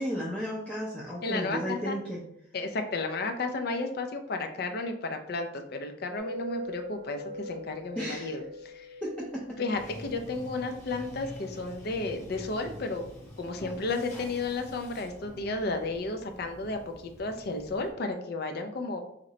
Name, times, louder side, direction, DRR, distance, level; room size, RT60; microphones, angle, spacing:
voice 1, 0.0-2.2 8.0-8.4 9.0-9.4, equal, 5° left, -5 dB, 0.5 m, -33 dB
voice 2, 1.2-1.9 2.5-8.9 9.6-13.0 13.4-16.8 17.2-19.0, left 3 dB, 60° left, 6 dB, 0.5 m, -33 dB
sound 1, 6.2-10.5, left 1 dB, 70° right, 0.6 m, -42 dB
Bathtub (filling or washing), 9.7-17.9, equal, 40° left, 1.2 m, -46 dB
3.1 x 2.9 x 3.8 m, 0.76 s
head